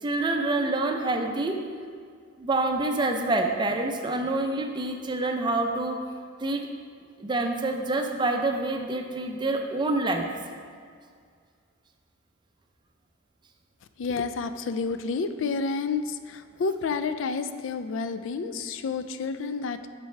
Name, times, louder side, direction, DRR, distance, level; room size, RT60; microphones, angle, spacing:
voice 1, 0.0-1.6 2.4-6.0 6.4-6.7 7.2-10.3, right 2 dB, 20° right, 4 dB, 0.5 m, -27 dB
voice 2, 14.0-19.9, left 4 dB, 65° left, 11 dB, 0.4 m, -30 dB
7.9 x 6.7 x 3.2 m, 2.1 s
head